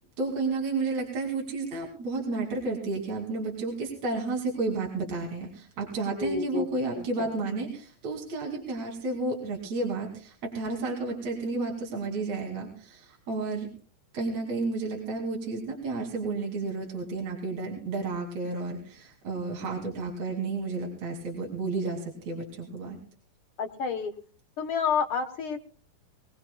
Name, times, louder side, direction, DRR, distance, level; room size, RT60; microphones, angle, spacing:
voice 1, 0.2-13.7 14.1-23.0, right 3 dB, 55° right, -1 dB, 3.7 m, -32 dB
voice 2, 6.2-6.7 7.2-7.3 23.6-24.1 24.6-25.6, left 6 dB, 60° left, 4 dB, 1.4 m, -29 dB
22.5 x 19.0 x 2.3 m, 0.42 s
omnidirectional pair, 3.8 m